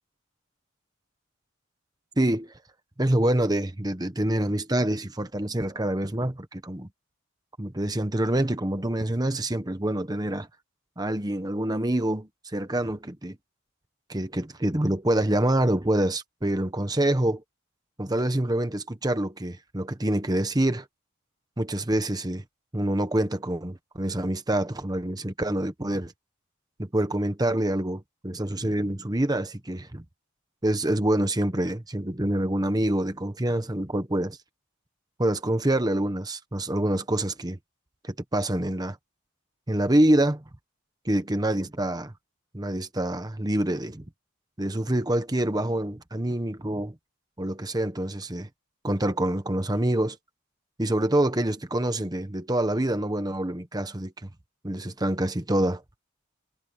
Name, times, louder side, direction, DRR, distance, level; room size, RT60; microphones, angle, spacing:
voice 1, 2.2-2.5 3.0-6.9 7.6-10.5 11.0-13.4 14.1-17.4 18.0-20.9 21.6-22.4 22.7-26.1 26.8-30.0 30.6-34.4 35.2-37.6 38.0-39.0 39.7-40.4 41.0-42.1 42.5-44.0 44.6-46.9 47.4-48.5 48.8-50.2 50.8-54.3 54.6-55.8, right 1 dB, 20° right, 1.1 m, -26 dB
head